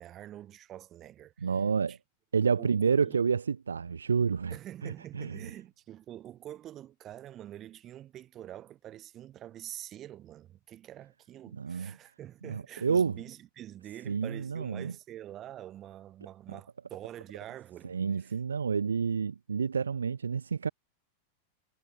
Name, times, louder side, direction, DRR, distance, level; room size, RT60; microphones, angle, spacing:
voice 1, 0.0-1.5 1.9-2.0 2.4-3.2 4.5-18.3, right 12 dB, 30° right, 5.7 m, -46 dB
voice 2, 1.4-2.0 2.3-4.6 4.8-5.4 11.5-11.9 12.4-13.2 14.1-14.9 17.8-20.7, right 6 dB, 75° right, 0.4 m, -29 dB
figure-of-eight pair, 90°, 0 cm